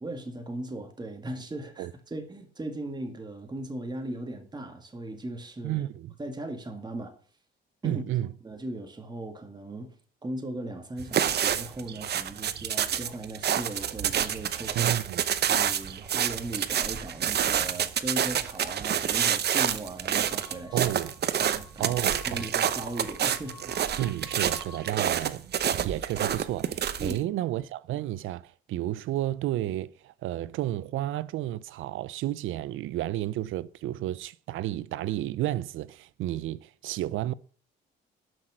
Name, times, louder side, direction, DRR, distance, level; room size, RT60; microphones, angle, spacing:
voice 1, 0.0-5.8 6.2-7.2 7.8-8.0 8.4-9.9 10.2-14.9 15.4-20.9 21.4-22.0 22.3-23.7 27.0-27.2, right 1 dB, 20° right, 2.0 m, -38 dB
voice 2, 5.6-6.1 7.8-8.3 14.8-15.2 20.7-21.1 21.8-22.5 24.0-25.5 25.8-37.3, right 14 dB, 80° right, 0.5 m, -31 dB
sound 1, 11.0-27.2, right 9 dB, 55° right, 0.8 m, -28 dB
sound 2, 20.1-25.0, left 5 dB, 15° left, 2.1 m, -51 dB
12.0 x 6.1 x 6.3 m
cardioid pair, 90°, 20 cm